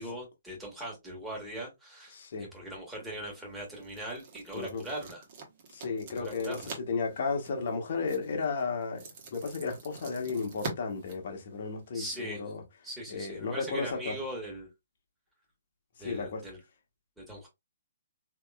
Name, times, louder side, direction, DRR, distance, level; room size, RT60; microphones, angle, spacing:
voice 1, 0.0-5.2 6.1-6.7 11.9-12.4 12.8-14.7 16.0-16.6 17.2-17.5, right 1 dB, 5° right, 1.6 m, -40 dB
voice 2, 2.1-2.5 4.5-4.8 5.7-12.6 13.1-14.1 16.0-16.4, left 4 dB, 55° left, 1.1 m, -34 dB
sound 1, 2.9-11.9, right 4 dB, 45° right, 1.3 m, -46 dB
3.5 x 2.9 x 2.3 m
figure-of-eight pair, 135°, 0 cm